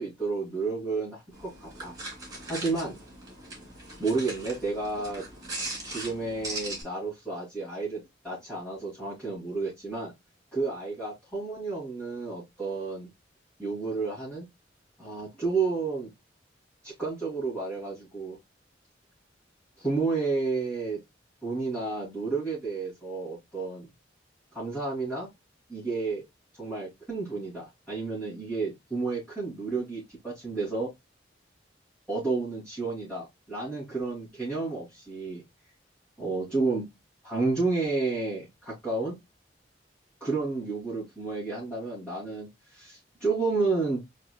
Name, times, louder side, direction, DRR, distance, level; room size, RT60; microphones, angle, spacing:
voice 1, 0.0-1.9 2.5-3.0 4.0-5.2 5.8-10.1 10.5-13.1 13.6-14.4 15.0-16.1 16.8-18.4 19.8-21.0 21.4-23.9 24.5-25.3 25.7-26.2 26.5-30.9 32.1-35.4 36.2-36.9 37.2-39.2 40.2-44.0, right 3 dB, 5° left, -9 dB, 2.8 m, -31 dB
sound 1, 1.3-6.8, right 2 dB, 20° right, 2.6 m, -39 dB
4.7 x 4.2 x 2.2 m, 0.19 s
head